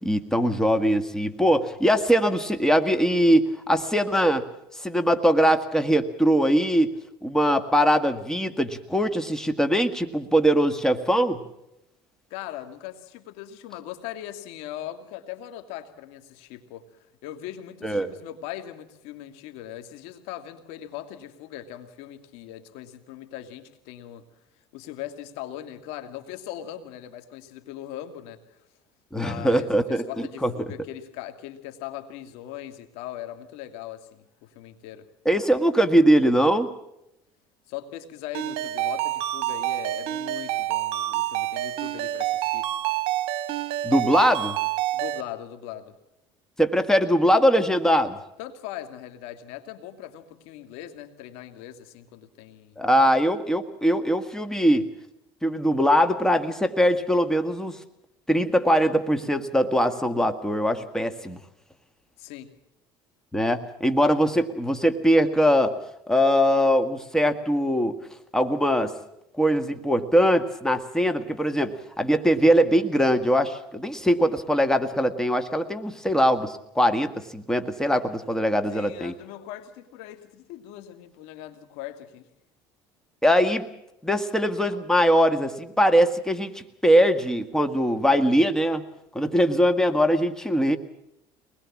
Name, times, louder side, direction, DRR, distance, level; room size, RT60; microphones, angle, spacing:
voice 1, 0.0-4.4 4.7-7.0 7.2-11.4 17.8-18.1 29.1-30.5 35.3-36.7 43.8-44.6 46.6-48.2 52.8-54.9 55.4-57.8 58.3-61.4 63.3-65.8 66.1-68.0 68.3-68.9 69.4-79.1 83.2-83.7 84.0-88.8 89.2-90.8, equal, 5° left, 8 dB, 1.7 m, -21 dB
voice 2, 12.3-16.9 17.2-24.2 24.7-28.7 29.1-35.1 37.7-42.7 44.9-45.9 48.4-52.8 62.2-62.5 78.7-82.3, left 12 dB, 75° left, 8 dB, 2.3 m, -40 dB
Ringtone, 38.3-45.2, right 14 dB, 65° right, 1.5 m, -28 dB
23.5 x 20.5 x 7.4 m, 0.84 s
supercardioid pair, 100°, 11 cm